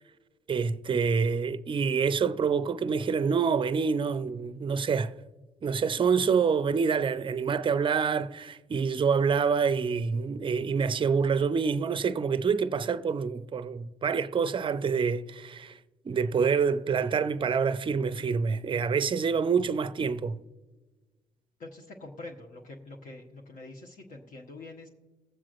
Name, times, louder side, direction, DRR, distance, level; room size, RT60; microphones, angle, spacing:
voice 1, 0.5-5.1 5.6-15.8 16.0-20.4, right 5 dB, 30° right, 0.5 m, -27 dB
voice 2, 21.6-24.9, left 2 dB, 55° left, 1.2 m, -45 dB
21.5 x 7.3 x 2.5 m
hypercardioid pair, 50°, 16 cm